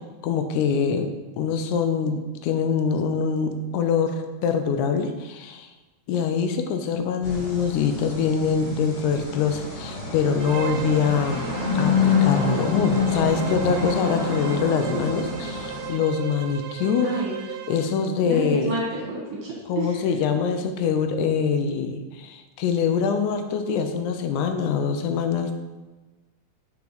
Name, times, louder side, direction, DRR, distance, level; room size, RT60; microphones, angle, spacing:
voice 1, 0.2-1.1 1.4-5.7 6.1-11.5 11.8-18.8 19.7-25.5, left 6 dB, 80° left, 7 dB, 2.0 m, -24 dB
sound 1, 7.2-15.9, left 4 dB, 50° left, 3.0 m, -27 dB
Bowed string instrument, 10.4-18.1, right 10 dB, 85° right, 2.1 m, -36 dB
voice 2, 16.8-17.4 18.2-19.9, right 1 dB, 60° right, -4 dB, 1.9 m, -29 dB
5.6 x 5.1 x 4.0 m, 1.2 s
omnidirectional pair, 3.6 m